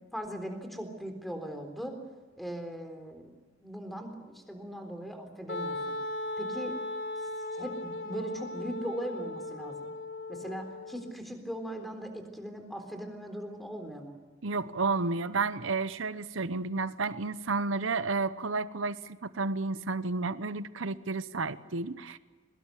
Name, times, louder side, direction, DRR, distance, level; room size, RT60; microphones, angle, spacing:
voice 1, 0.0-2.0 2.4-3.3 3.6-6.0 6.4-6.8 7.5-9.9 10.3-14.2, equal, ahead, 5 dB, 3.8 m, -39 dB
Wind instrument woodwind instrument, 5.5-11.1, left 2 dB, 65° left, 2.0 m, -37 dB
voice 2, 14.4-22.2, right 3 dB, 70° right, 14 dB, 0.9 m, -31 dB
23.0 x 20.5 x 8.2 m, 1.4 s
head